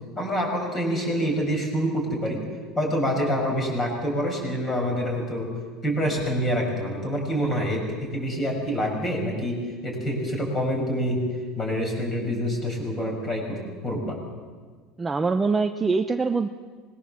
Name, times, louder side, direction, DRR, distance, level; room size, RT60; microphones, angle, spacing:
voice 1, 0.2-2.4 2.7-5.5 5.8-11.3 11.6-14.2, equal, 20° left, 1 dB, 6.6 m, -26 dB
voice 2, 15.0-16.5, right 4 dB, 10° right, 6 dB, 0.7 m, -23 dB
25.0 x 21.0 x 7.2 m, 1.5 s
cardioid pair, 160°, 0 cm